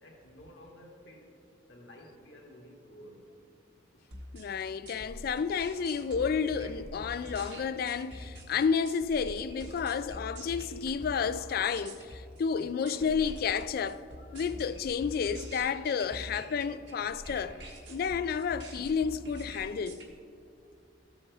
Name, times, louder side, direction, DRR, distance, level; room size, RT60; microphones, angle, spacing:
voice 1, 0.0-1.3 1.7-3.3, equal, 75° left, 1.7 m, -52 dB
sound 1, 4.1-20.1, equal, 70° right, 1.4 m, -45 dB
voice 2, 4.3-14.0 14.3-17.6 17.9-20.0, left 6 dB, 55° left, 0.3 m, -31 dB
13.5 x 7.1 x 3.4 m
head